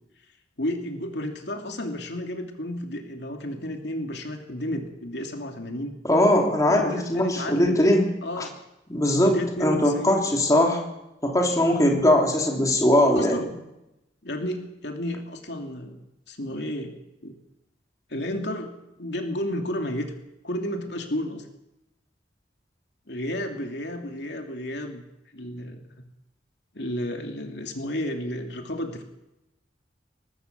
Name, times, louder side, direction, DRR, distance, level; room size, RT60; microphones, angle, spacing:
voice 1, 0.6-5.9 6.7-7.8 8.2-8.5 9.2-10.2 13.1-13.5 14.2-17.0 17.2-17.4 18.1-18.7 19.0-20.1 20.4-21.4 23.1-25.0 25.3-26.1 26.7-29.0, left 1 dB, 70° left, 3 dB, 2.9 m, -32 dB
voice 2, 6.0-8.1 8.4-8.5 8.9-10.8 11.2-13.4, left 1 dB, 20° left, 1 dB, 3.3 m, -20 dB
23.5 x 19.0 x 7.0 m, 0.93 s
head